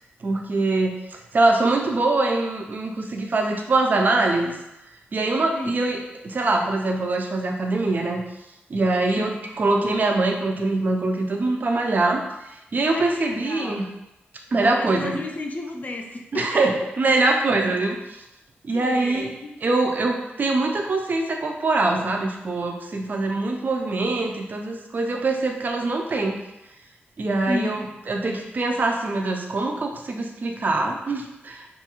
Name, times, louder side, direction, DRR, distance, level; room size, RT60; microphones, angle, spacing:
voice 1, 0.2-4.6 5.1-8.2 8.7-13.9 14.5-15.2 16.3-18.0 18.6-19.3 19.6-26.4 27.2-31.7, right 2 dB, 45° right, 2 dB, 0.4 m, -23 dB
voice 2, 5.5-6.0 9.2-9.5 12.8-13.8 14.5-16.6 17.6-17.8 18.7-19.5 27.5-27.9, left 2 dB, 40° left, 2 dB, 0.4 m, -33 dB
2.6 x 2.4 x 2.8 m, 0.91 s
wide cardioid pair, 115°, 4 cm